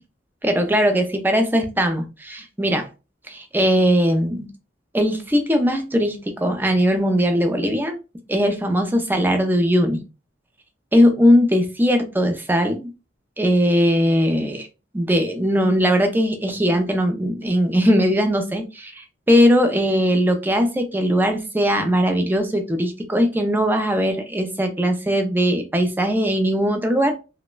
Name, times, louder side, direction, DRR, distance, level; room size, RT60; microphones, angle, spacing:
voice 1, 0.4-2.9 3.3-4.5 4.9-8.0 8.3-10.0 10.9-12.9 13.4-14.7 14.9-27.1, equal, 10° right, 6 dB, 0.4 m, -19 dB
2.9 x 2.1 x 2.2 m, 0.29 s
head